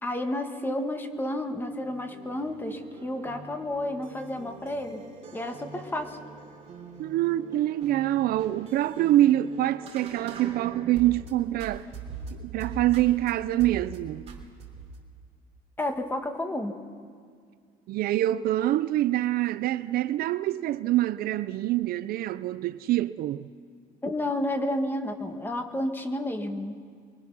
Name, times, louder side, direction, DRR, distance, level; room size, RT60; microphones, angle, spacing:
voice 1, 0.0-5.0 5.3-6.2 15.8-16.7 24.0-26.7, left 1 dB, 10° left, 1.5 m, -31 dB
sound 1, 1.5-11.3 11.6-13.3 13.6-14.0 14.3-15.0, right 4 dB, 35° right, 3.4 m, -43 dB
voice 2, 7.0-11.9 12.3-14.3 17.9-23.5, right 14 dB, 60° right, 0.5 m, -25 dB
24.5 x 23.0 x 6.1 m
cardioid pair, 150°, 17 cm